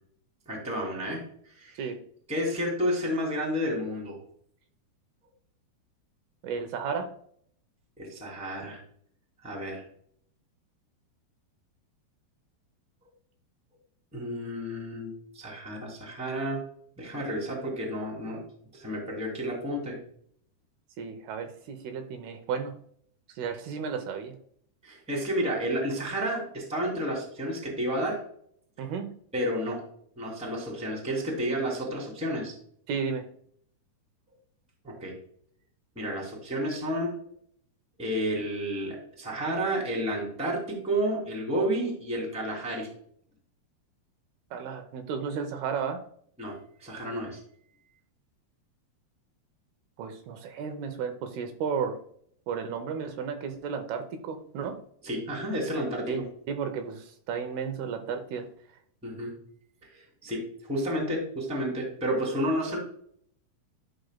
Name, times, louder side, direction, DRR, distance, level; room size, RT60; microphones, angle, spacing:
voice 1, 0.4-1.2 1.6-1.8 2.3-4.2 8.0-8.8 9.4-9.8 14.1-16.6 17.0-18.4 18.7-19.9 24.8-28.2 29.3-29.8 30.1-32.5 34.8-35.1 35.9-37.1 38.0-42.9 46.4-47.4 55.0-56.2 59.0-59.3 59.9-62.8, equal, ahead, -1 dB, 1.6 m, -31 dB
voice 2, 6.4-7.1 21.0-22.7 23.3-24.3 28.8-29.1 32.9-33.3 44.5-46.0 50.0-52.0 52.5-54.8 56.1-56.2 56.5-58.5, right 6 dB, 80° right, 6 dB, 2.6 m, -33 dB
11.5 x 6.3 x 2.2 m, 0.62 s
omnidirectional pair, 4.6 m